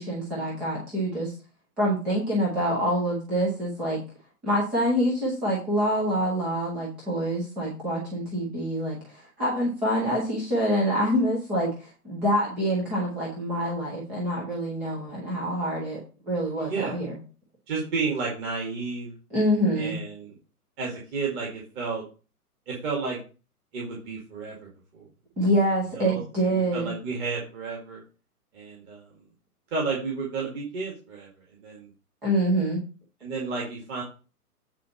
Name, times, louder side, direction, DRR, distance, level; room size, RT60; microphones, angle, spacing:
voice 1, 0.0-1.3 1.8-4.0 4.4-16.0 16.3-17.2 19.3-19.9 25.4-26.9 32.2-32.8, equal, ahead, -6 dB, 0.4 m, -26 dB
voice 2, 16.5-17.0 17.7-19.1 19.8-20.3 20.8-22.0 22.7-23.2 23.7-25.1 25.4-25.5 25.9-28.0 28.5-29.1 29.7-31.3 31.6-31.9 33.2-34.0, right 4 dB, 25° right, -3 dB, 2.1 m, -32 dB
8.3 x 4.1 x 5.2 m, 0.34 s
figure-of-eight pair, 120°, 46 cm